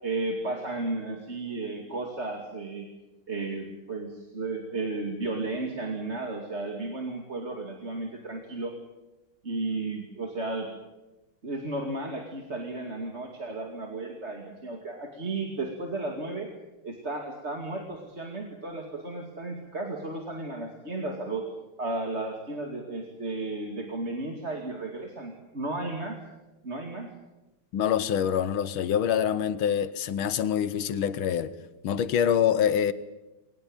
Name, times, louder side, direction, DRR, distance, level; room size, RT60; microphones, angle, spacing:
voice 1, 0.0-2.9 3.3-8.7 9.4-10.7 11.4-16.5 16.8-21.4 21.8-26.2 26.6-27.1, right 2 dB, 30° right, 2.6 m, -34 dB
voice 2, 27.7-31.5 31.8-32.9, left 9 dB, 70° left, 1.8 m, -25 dB
22.5 x 19.5 x 9.0 m
omnidirectional pair, 2.4 m